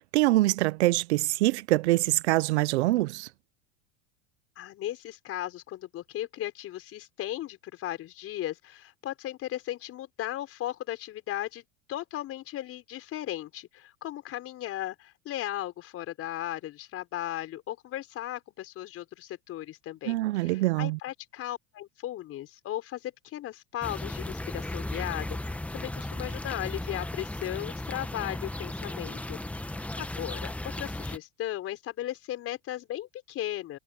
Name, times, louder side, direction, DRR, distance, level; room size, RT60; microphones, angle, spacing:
voice 1, 0.1-3.3 20.1-21.0, right 18 dB, 80° right, 0.8 m, -24 dB
voice 2, 4.6-11.6 11.9-29.4 29.7-30.5 30.7-33.8, left 13 dB, 45° left, 4.7 m, -36 dB
sound 1, 23.8-31.2, left 1 dB, 5° left, 1.1 m, -36 dB
supercardioid pair, 110°, 33 cm